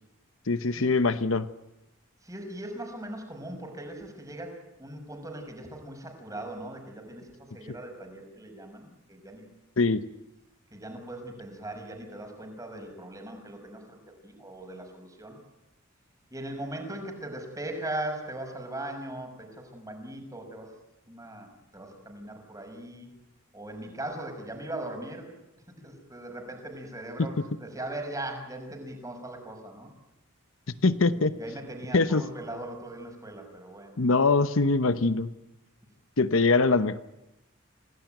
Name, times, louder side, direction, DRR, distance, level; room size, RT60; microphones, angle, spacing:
voice 1, 0.5-1.5 9.8-10.0 30.8-31.3 31.9-32.2 34.0-35.3 36.2-37.0, left 3 dB, 70° left, 12 dB, 0.9 m, -23 dB
voice 2, 2.2-9.5 10.7-15.4 16.3-20.7 21.1-21.5 21.7-23.1 23.5-25.4 25.8-27.3 27.6-29.9 31.3-34.0, right 1 dB, 15° right, 4 dB, 6.0 m, -39 dB
28.0 x 18.5 x 9.2 m, 0.96 s
head